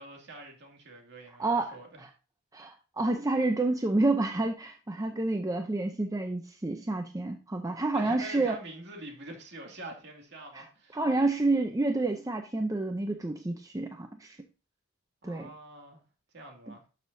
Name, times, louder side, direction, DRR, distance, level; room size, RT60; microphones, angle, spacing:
voice 1, 0.0-2.0 7.9-11.0 15.2-16.0 16.3-16.8, right 2 dB, 55° right, 2.3 m, -45 dB
voice 2, 1.4-2.1 2.5-8.6 10.5-10.6 10.9-14.4 15.2-15.5, right 2 dB, 15° right, 0.5 m, -29 dB
12.0 x 6.3 x 2.7 m
head